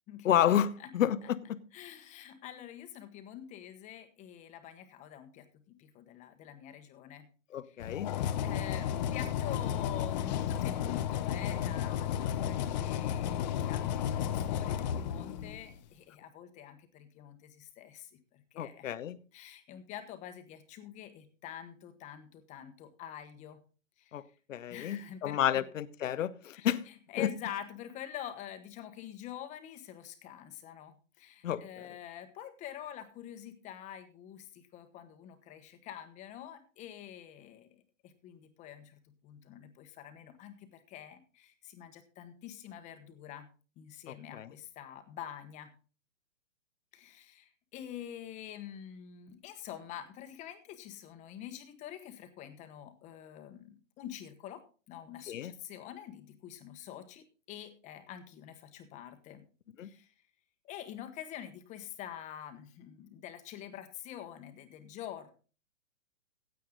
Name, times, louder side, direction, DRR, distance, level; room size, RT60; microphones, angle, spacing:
voice 1, 0.2-1.6 7.5-8.1 18.6-19.2 24.1-24.2 24.5-26.8 27.2-27.3 31.4-31.9 44.1-44.5 55.3-55.5 59.8-59.9, left 10 dB, 70° left, 16 dB, 0.9 m, -31 dB
voice 2, 1.7-7.3 7.7-7.8 8.4-18.9 19.3-23.6 24.0-24.2 24.7-25.6 26.5-43.5 43.8-45.7 46.9-54.6 54.9-59.4 59.8-60.1 60.6-65.3, left 10 dB, 15° left, 9 dB, 1.2 m, -46 dB
sound 1, 7.8-15.8, left 9 dB, 35° left, 0.7 m, -33 dB
15.5 x 8.5 x 3.8 m, 0.36 s
hypercardioid pair, 150°, 40 cm